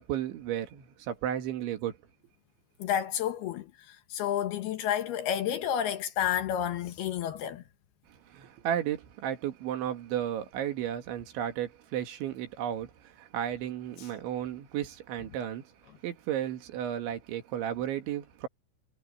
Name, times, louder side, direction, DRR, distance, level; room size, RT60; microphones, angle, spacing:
voice 1, 0.0-2.0 8.1-15.7 16.0-18.5, right 10 dB, 75° right, 4.3 m, -34 dB
voice 2, 2.8-7.6 14.0-14.1, left 10 dB, 70° left, 2.8 m, -30 dB
omnidirectional pair, 5.5 m